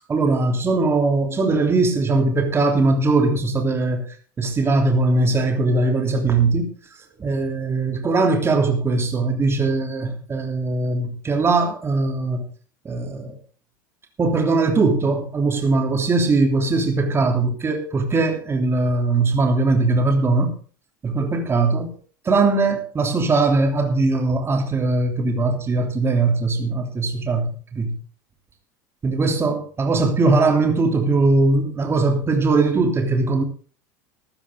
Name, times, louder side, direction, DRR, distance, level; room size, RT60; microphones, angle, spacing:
voice 1, 0.1-6.7 7.2-12.5 12.8-13.3 14.2-20.5 21.0-21.9 22.2-28.0 29.0-33.4, right 3 dB, 25° right, 3.2 m, -20 dB
14.0 x 13.5 x 3.8 m
hypercardioid pair, 100°, 10 cm